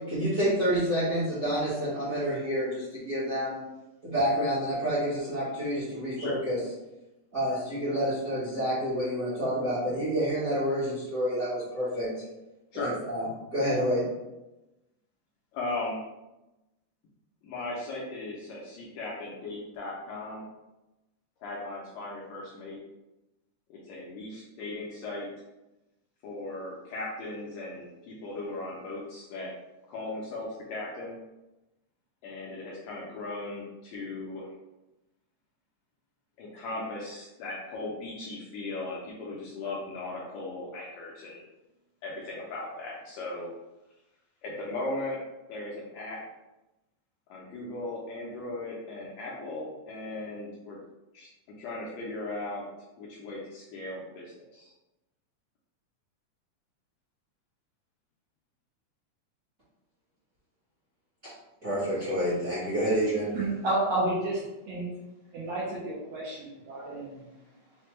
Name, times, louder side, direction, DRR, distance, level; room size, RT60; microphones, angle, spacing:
voice 1, 0.1-3.6 4.0-6.6 7.3-12.1 12.7-13.2 13.5-14.0 61.2-61.3 61.6-63.3, equal, 45° right, -10 dB, 1.0 m, -28 dB
voice 2, 15.5-16.0 17.4-20.4 21.4-22.8 23.7-25.3 26.2-29.5 29.9-31.2 32.2-34.5 36.4-41.4 42.0-43.5 44.4-45.2 45.5-46.2 47.3-50.8 51.1-51.3 51.6-52.7 53.0-54.7, left 2 dB, 75° left, -4 dB, 1.7 m, -37 dB
voice 3, 63.3-64.4 64.7-64.9 65.3-67.2, right 2 dB, 70° right, -6 dB, 1.6 m, -30 dB
5.8 x 2.1 x 3.2 m, 0.99 s
omnidirectional pair, 3.7 m